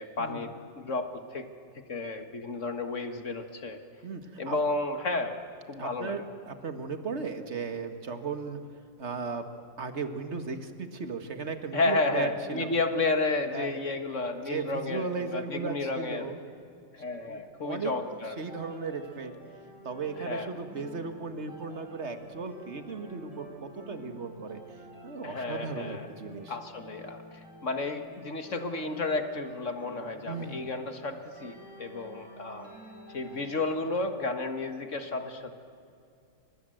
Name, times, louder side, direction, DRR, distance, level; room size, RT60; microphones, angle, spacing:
voice 1, 0.0-1.5 1.9-3.8 4.4-5.4 5.7-6.2 11.7-16.3 16.9-18.4 20.2-20.5 25.2-26.1 26.5-32.7 33.1-35.6, left 3 dB, 40° left, 7 dB, 1.8 m, -32 dB
voice 2, 4.0-4.6 5.8-8.6 9.0-9.4 9.8-12.7 13.5-13.7 14.5-16.4 17.3-17.9 18.4-19.3 19.8-24.6 25.0-26.6 30.3-30.7, right 4 dB, 35° right, 7 dB, 1.9 m, -36 dB
sound 1, 18.1-33.9, right 1 dB, 65° right, 5.6 m, -49 dB
29.5 x 25.5 x 7.9 m, 2.5 s
omnidirectional pair, 2.1 m